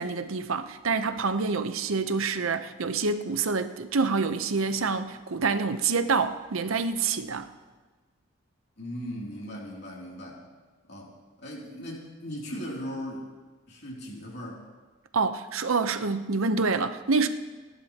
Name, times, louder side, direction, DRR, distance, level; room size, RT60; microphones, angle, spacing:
voice 1, 0.0-7.5 15.1-17.3, right 4 dB, 80° right, 0.8 m, -27 dB
voice 2, 8.8-10.4 10.8-11.1 11.4-13.3 13.7-14.6, equal, 55° left, 2.8 m, -38 dB
30.0 x 11.0 x 2.9 m
head